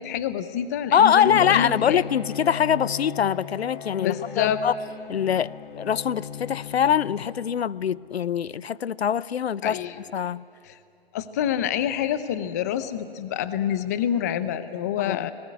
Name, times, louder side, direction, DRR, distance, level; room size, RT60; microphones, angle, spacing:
voice 1, 0.0-2.0 4.0-4.6 9.6-10.0 11.1-15.3, left 10 dB, 15° left, 0.5 m, -27 dB
voice 2, 0.9-4.7 5.1-9.8 10.1-10.4 15.0-15.3, left 8 dB, 80° left, 0.6 m, -23 dB
Bowed string instrument, 1.2-7.9, left 8 dB, 55° left, 2.1 m, -37 dB
26.0 x 19.5 x 9.4 m
hypercardioid pair, 150°, 31 cm